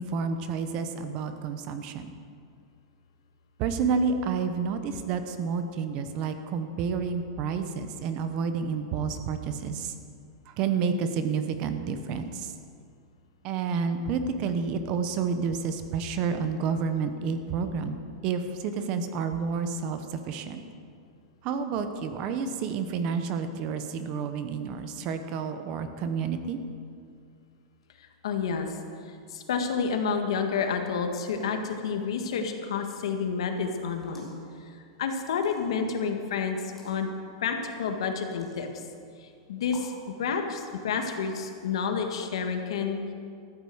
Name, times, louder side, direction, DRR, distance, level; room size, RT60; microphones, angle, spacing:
voice 1, 0.0-2.1 3.6-9.9 10.5-12.5 13.4-20.6 21.4-26.6, right 5 dB, 30° right, 9 dB, 0.8 m, -30 dB
voice 2, 28.0-28.8 29.0-34.3 34.6-37.1 37.4-38.8 39.2-39.9 40.2-43.1, left 6 dB, 75° left, 5 dB, 1.8 m, -30 dB
sound 1, 34.0-34.4 35.3-35.9 36.6-36.9 38.2-38.7 39.6-40.0, left 2 dB, 5° left, 2.3 m, -51 dB
13.5 x 8.9 x 7.8 m, 2.3 s
supercardioid pair, 175°, 3 cm